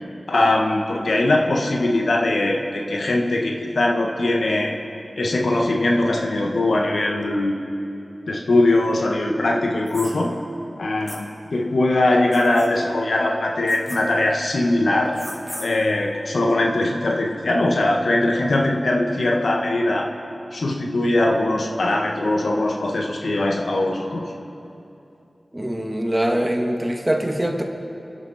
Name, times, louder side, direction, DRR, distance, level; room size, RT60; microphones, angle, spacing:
voice 1, 0.3-4.7 5.2-7.6 8.3-10.3 10.8-15.1 15.6-20.1 20.5-24.2, left 2 dB, 85° left, 1 dB, 1.5 m, -21 dB
sound 1, 9.9-10.1 11.1-11.2 12.3-12.7 13.7-14.0 15.1-15.7, equal, 15° left, 2.8 m, -36 dB
voice 2, 25.5-27.6, right 1 dB, 20° right, 2 dB, 1.7 m, -23 dB
28.0 x 11.0 x 4.3 m, 2.8 s
wide cardioid pair, 65°, 0 cm